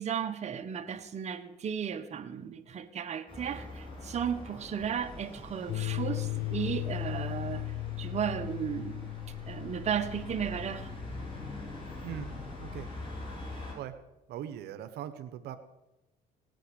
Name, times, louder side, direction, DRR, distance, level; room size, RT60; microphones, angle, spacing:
voice 1, 0.0-7.6 8.0-9.1 9.5-10.9, right 8 dB, 40° right, 7 dB, 1.3 m, -34 dB
sound 1, 3.3-13.7, left 2 dB, 30° left, 7.9 m, -43 dB
sound 2, 5.7-12.7, left 22 dB, 65° left, 0.7 m, -38 dB
voice 2, 14.3-15.6, right 10 dB, 75° right, 10 dB, 1.1 m, -40 dB
18.0 x 9.1 x 8.2 m, 0.98 s
cardioid pair, 110°, 17 cm